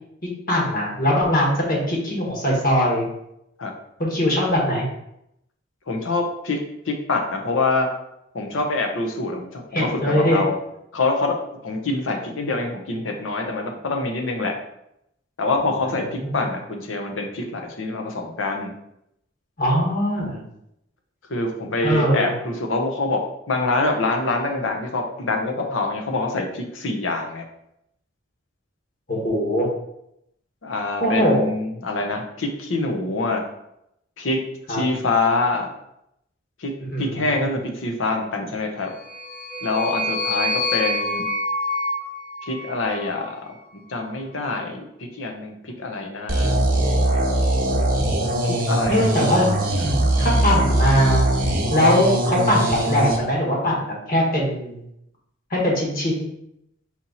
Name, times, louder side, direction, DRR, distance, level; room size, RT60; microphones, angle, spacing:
voice 1, 0.5-3.1 4.0-4.8 9.7-10.4 16.2-16.4 19.6-20.4 21.8-22.3 29.1-29.7 31.0-31.5 34.7-34.8 36.9-37.4 48.4-48.6 48.9-49.5 50.2-51.3 51.7-54.8 55.5-56.3, equal, 45° left, -3 dB, 1.5 m, -21 dB
voice 2, 5.9-6.6 6.8-7.9 8.3-10.6 10.9-11.4 11.6-14.5 15.4-18.7 21.3-23.2 23.5-27.4 30.6-33.4 34.2-35.7 36.6-38.9 39.6-41.2 42.4-46.6 48.4-49.3 49.8-49.9, left 3 dB, 90° left, 3 dB, 0.8 m, -25 dB
sound 1, 39.0-43.3, left 1 dB, 10° left, 0.8 m, -27 dB
sound 2, 46.3-53.2, right 1 dB, 45° right, 0.8 m, -21 dB
4.3 x 2.9 x 4.0 m, 0.80 s
head